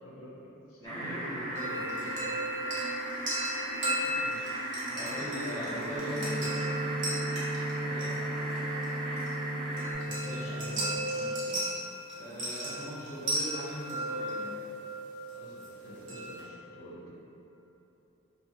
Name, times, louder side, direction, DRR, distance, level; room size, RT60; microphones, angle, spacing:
voice 1, 0.0-0.8 3.9-4.6 4.9-6.0 7.8-8.3 10.0-11.7 15.3-17.2, equal, 85° left, -5 dB, 0.5 m, -46 dB
voice 2, 0.8-2.3 4.9-6.6 10.2-10.6 12.1-14.5, equal, 15° left, -9 dB, 0.5 m, -40 dB
sound 1, 0.8-9.9, right 1 dB, 35° right, 0.3 m, -37 dB
sound 2, 1.6-16.4, right 1 dB, 60° right, 0.7 m, -36 dB
sound 3, 6.0-11.0, right 1 dB, 85° right, 1.1 m, -35 dB
2.6 x 2.1 x 2.6 m, 3.0 s
head